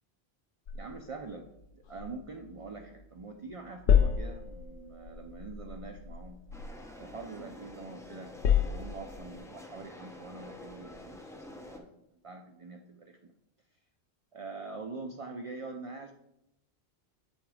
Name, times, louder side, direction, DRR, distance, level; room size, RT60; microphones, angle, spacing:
sound 1, 0.7-3.2 3.5-7.7 8.1-9.4, left 8 dB, 90° left, 0.9 m, -31 dB
voice 1, 0.7-1.5 1.7-6.4 7.0-13.2 14.3-16.1, right 3 dB, 45° right, 4 dB, 0.5 m, -44 dB
sound 2, 6.5-11.8, left 2 dB, 5° left, 0.7 m, -48 dB
8.0 x 3.9 x 4.7 m, 0.84 s
omnidirectional pair, 1.1 m